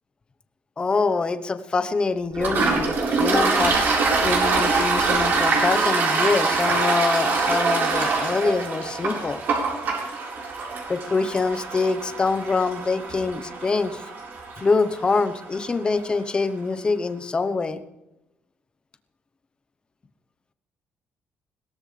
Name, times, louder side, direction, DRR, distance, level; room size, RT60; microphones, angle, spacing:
voice 1, 0.8-3.8 4.2-9.4 10.9-14.0 14.6-17.8, left 4 dB, 20° left, 10 dB, 0.9 m, -24 dB
Toilet flush, 2.3-15.7, right 4 dB, 50° right, 4.4 m, -24 dB
21.5 x 17.0 x 3.3 m, 0.94 s
cardioid pair, 150°, 4 cm